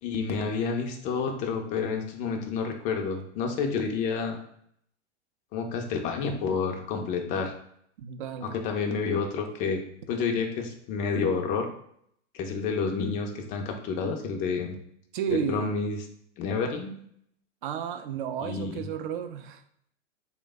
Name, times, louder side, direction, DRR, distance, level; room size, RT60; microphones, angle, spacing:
voice 1, 0.0-4.4 5.5-7.5 8.4-11.7 12.3-14.8 15.3-16.0 16.4-17.0 18.4-18.8, left 5 dB, 20° left, 4 dB, 0.4 m, -29 dB
voice 2, 8.0-8.6 15.1-15.7 17.6-19.6, right 8 dB, 45° right, 9 dB, 0.4 m, -32 dB
3.2 x 2.1 x 3.4 m, 0.69 s
figure-of-eight pair, 105°, 37 cm